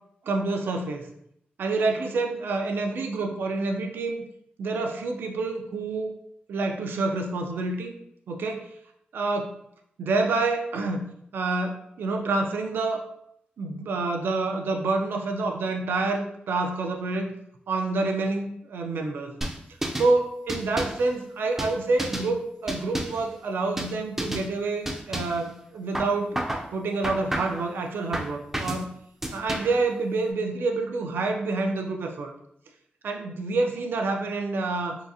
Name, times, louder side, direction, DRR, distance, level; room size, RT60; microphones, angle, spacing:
voice 1, 0.3-1.0 1.6-4.2 4.6-6.1 6.5-7.9 8.3-8.7 9.1-9.5 10.0-11.1 11.3-13.0 13.6-17.3 17.7-19.3 20.0-26.4 26.7-28.9 29.3-32.3 33.0-35.0, right 3 dB, 80° right, 3 dB, 0.4 m, -27 dB
sound 1, 19.4-20.1 20.5-21.0 21.6-22.3 22.7-23.3 23.8-23.9 24.2-24.5 24.9-25.4 25.9-26.7 27.0-27.6 28.1-28.8 29.2-29.8, right 1 dB, 10° right, 0.4 m, -31 dB
3.7 x 2.4 x 2.6 m, 0.73 s
wide cardioid pair, 150°, 4 cm